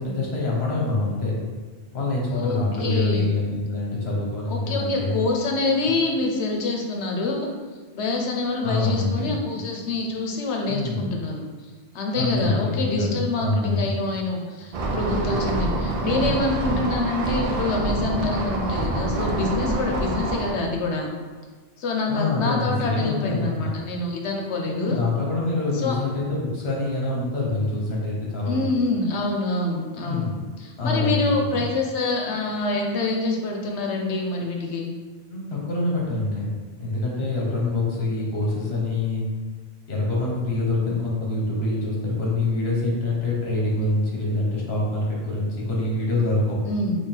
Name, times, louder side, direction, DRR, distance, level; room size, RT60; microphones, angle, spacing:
voice 1, 0.0-1.4 1.9-5.2 8.6-9.4 10.7-11.1 12.1-14.0 22.1-23.7 24.7-28.6 30.0-30.3 30.8-31.6 35.3-36.5 36.8-39.2 39.9-46.6, left 2 dB, 70° left, -3 dB, 1.3 m, -25 dB
voice 2, 2.3-3.2 4.5-7.5 7.9-11.4 11.9-21.1 21.8-25.0 25.7-26.0 28.5-30.3 30.6-34.9 46.7-47.0, left 3 dB, 85° left, 1 dB, 1.0 m, -26 dB
sound 1, 14.7-20.5, right 2 dB, 50° right, 0.4 m, -26 dB
3.6 x 3.1 x 4.4 m, 1.4 s
omnidirectional pair, 1.1 m